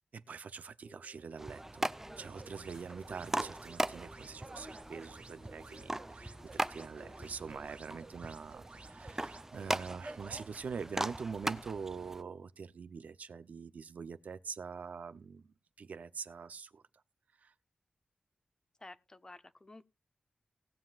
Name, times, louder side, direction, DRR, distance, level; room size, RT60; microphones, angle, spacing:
voice 1, 0.1-1.9 2.2-15.5 15.8-16.8 17.4-17.5, right 5 dB, 80° right, 0.6 m, -44 dB
sound 1, 0.8-7.7, left 2 dB, 70° left, 4.4 m, -59 dB
sound 2, 1.4-12.2, right 1 dB, 15° right, 0.5 m, -40 dB
sound 3, 2.3-10.5, right 4 dB, 55° right, 1.7 m, -56 dB
voice 2, 18.8-19.8, left 2 dB, 25° left, 0.7 m, -52 dB
19.0 x 7.5 x 2.4 m
wide cardioid pair, 115°, 3 cm